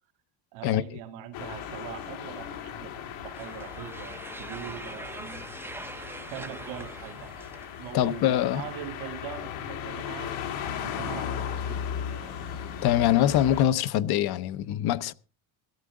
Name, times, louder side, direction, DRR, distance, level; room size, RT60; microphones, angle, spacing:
voice 1, 0.5-5.5 6.3-7.5 7.8-10.3 10.8-12.3, right 10 dB, 80° right, 2.7 m, -42 dB
sound 1, 1.3-13.6, left 8 dB, 80° left, 2.6 m, -37 dB
sound 2, 3.3-8.2, right 2 dB, 5° right, 0.6 m, -43 dB
voice 2, 7.9-8.6 12.8-15.1, left 12 dB, 50° left, 0.7 m, -23 dB
18.5 x 13.0 x 3.7 m
cardioid pair, 170°, 48 cm